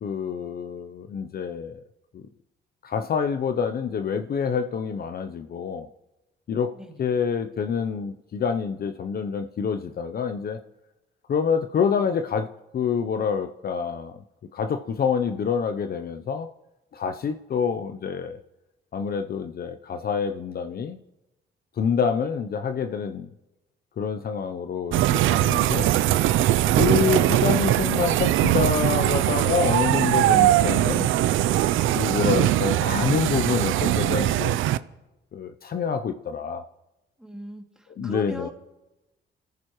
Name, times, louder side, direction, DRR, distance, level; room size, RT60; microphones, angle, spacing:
voice 1, 0.0-1.8 2.1-2.3 2.8-5.9 6.5-10.6 11.3-14.2 14.5-16.5 16.9-18.4 18.9-21.0 21.8-23.3 24.0-25.9 26.8-31.1 31.9-34.6 35.3-36.6 38.0-38.5, left 6 dB, 50° left, 0.7 m, -27 dB
voice 2, 6.7-7.0 37.2-38.5, equal, 5° right, 2.6 m, -40 dB
sound 1, 24.9-34.8, right 13 dB, 80° right, 0.5 m, -21 dB
27.0 x 14.5 x 3.1 m
cardioid pair, 90°, 20 cm